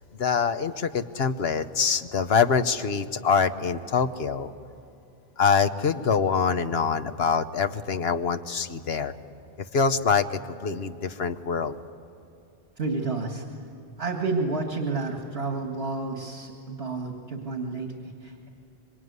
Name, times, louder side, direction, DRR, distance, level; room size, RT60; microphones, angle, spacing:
voice 1, 0.2-4.5 5.4-9.1 9.6-11.8, left 6 dB, 75° left, 9 dB, 1.3 m, -25 dB
voice 2, 12.8-13.4 14.0-18.5, right 3 dB, 70° right, 2 dB, 2.1 m, -30 dB
26.0 x 24.0 x 9.5 m, 2.7 s
omnidirectional pair, 1.1 m